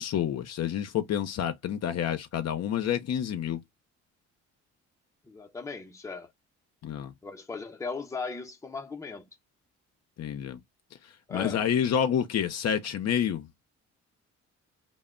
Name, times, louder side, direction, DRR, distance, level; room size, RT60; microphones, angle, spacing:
voice 1, 0.0-3.6 6.8-7.1 10.2-10.6 11.3-13.5, left 9 dB, 55° left, 0.6 m, -28 dB
voice 2, 5.2-6.3 7.2-9.3 11.3-11.7, left 4 dB, 10° left, 0.6 m, -37 dB
2.1 x 2.0 x 3.6 m
cardioid pair, 90°, 30 cm